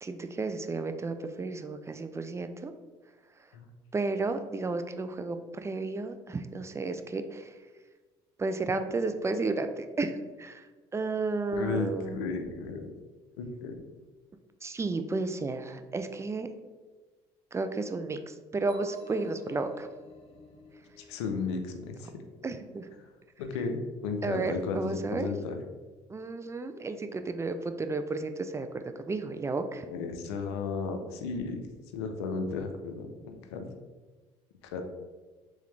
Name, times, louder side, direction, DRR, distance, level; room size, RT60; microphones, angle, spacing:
voice 1, 0.0-2.7 3.9-7.6 8.4-10.7 10.9-12.2 14.6-16.5 17.5-19.9 22.4-22.9 24.2-25.3 26.1-29.9, right 3 dB, 20° right, 8 dB, 0.3 m, -32 dB
voice 2, 11.5-12.9 13.4-13.8 21.0-22.1 23.4-25.6 29.9-31.6 31.9-33.6 34.6-34.8, left 4 dB, 90° left, 6 dB, 0.5 m, -34 dB
sound 1, 18.7-22.4, left 2 dB, 45° left, 0.7 m, -47 dB
3.5 x 3.2 x 3.2 m, 1.3 s
supercardioid pair, 70°, 14 cm